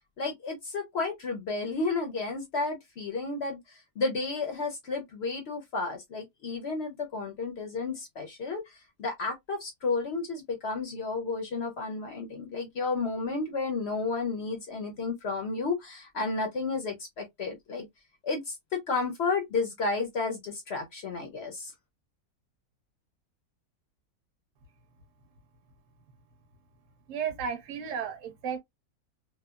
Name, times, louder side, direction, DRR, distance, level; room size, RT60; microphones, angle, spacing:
voice 1, 0.2-17.9 18.2-21.7, left 3 dB, 65° left, 0.6 m, -32 dB
voice 2, 27.1-28.6, right 7 dB, 60° right, 1.0 m, -33 dB
3.0 x 2.0 x 2.2 m
omnidirectional pair, 1.7 m